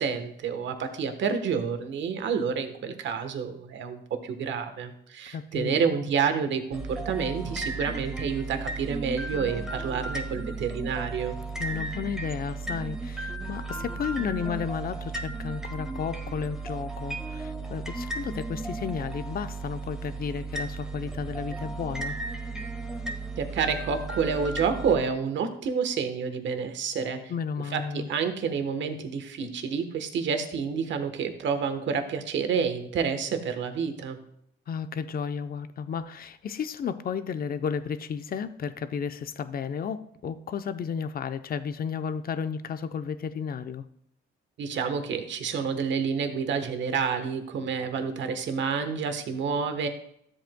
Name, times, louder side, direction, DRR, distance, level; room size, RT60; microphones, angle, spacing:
voice 1, 0.0-11.4 23.4-27.3 27.7-34.2 44.6-49.9, right 6 dB, 70° right, 8 dB, 1.2 m, -29 dB
voice 2, 5.3-5.8 11.6-22.2 27.3-28.1 34.7-43.8, left 7 dB, 50° left, 11 dB, 0.7 m, -33 dB
sound 1, 6.7-25.0, right 3 dB, 5° right, 1.5 m, -35 dB
13.0 x 7.8 x 2.3 m, 0.71 s
cardioid pair, 90°, 20 cm